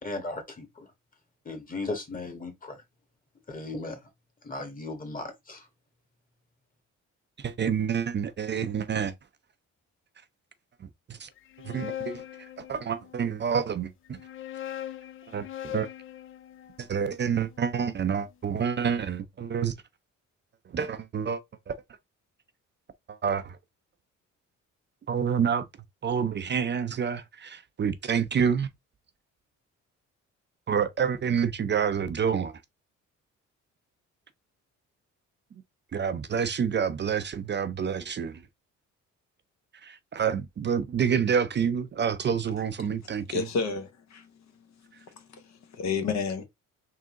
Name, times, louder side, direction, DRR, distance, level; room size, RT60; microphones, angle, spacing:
voice 1, 0.0-0.9 1.4-2.8 3.5-4.0 4.4-5.7, left 2 dB, 30° left, 1.4 m, -36 dB
voice 2, 7.4-9.1 11.1-11.3 11.6-12.2 12.7-14.2 15.3-15.9 16.8-19.7 20.7-21.4 21.7-21.8 23.1-23.6 25.1-25.6 26.0-28.7 30.7-32.5 35.9-38.4 39.8-43.4, right 7 dB, 35° right, 0.5 m, -28 dB
sound 1, 11.4-13.3 14.1-18.2, left 11 dB, 45° left, 0.4 m, -41 dB
voice 3, 43.0-44.3 44.9-46.4, left 5 dB, 65° left, 0.9 m, -32 dB
3.7 x 2.7 x 3.7 m
cardioid pair, 90°, 30 cm